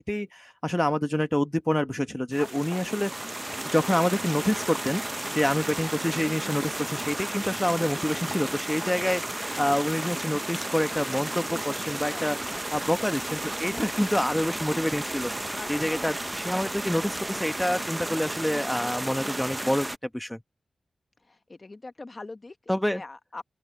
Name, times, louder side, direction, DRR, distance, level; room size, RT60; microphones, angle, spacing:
voice 1, 0.0-3.1 3.7-5.0 5.3-12.4 12.7-15.3 15.7-19.9 20.1-20.4 22.7-23.0, left 1 dB, 5° left, 1.2 m, -27 dB
sound 1, 2.3-20.0, right 1 dB, 15° right, 0.7 m, -33 dB
voice 2, 2.4-2.9 12.1-12.7 13.4-13.9 15.6-16.1 21.3-22.6 22.8-23.4, left 3 dB, 35° left, 1.2 m, -43 dB
sound 2, 12.4-17.4, left 5 dB, 65° left, 7.6 m, -56 dB
open air
wide cardioid pair, 80°, 0 cm